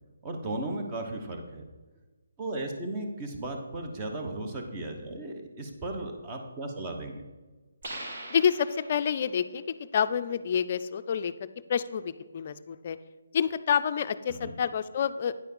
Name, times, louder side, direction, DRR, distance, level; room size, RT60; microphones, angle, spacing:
voice 1, 0.2-1.6 2.4-7.2 14.3-14.5, right 2 dB, 20° right, 2 dB, 1.0 m, -35 dB
sound 1, 7.8-9.4, right 1 dB, 50° right, 2.0 m, -41 dB
voice 2, 8.3-9.6 9.9-13.0 13.3-15.3, left 7 dB, 40° left, 11 dB, 0.4 m, -28 dB
9.5 x 4.5 x 5.4 m, 1.3 s
hypercardioid pair, 160°, 0 cm